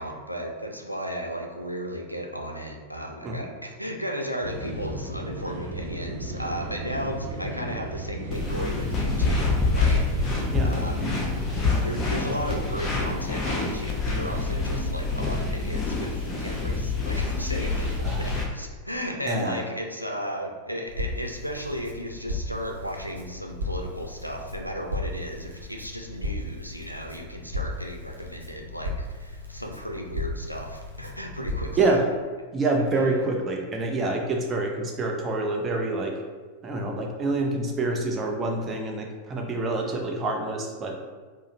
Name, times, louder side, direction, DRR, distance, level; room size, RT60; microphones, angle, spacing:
voice 1, 0.0-11.1 11.8-31.8 32.9-33.1, equal, 90° left, 2 dB, 0.4 m, -35 dB
sound 1, 4.4-11.6, right 1 dB, 50° right, 0.8 m, -35 dB
sound 2, 8.3-18.4, left 3 dB, 25° left, 0.7 m, -26 dB
voice 2, 18.0-18.4 19.3-19.6 31.8-32.1 32.5-36.2 36.6-41.0, right 2 dB, 20° right, 1 dB, 0.5 m, -27 dB
Crackle, 20.9-31.8, left 1 dB, 85° right, 0.5 m, -35 dB
4.8 x 2.0 x 2.6 m, 1.4 s
figure-of-eight pair, 90°, 0 cm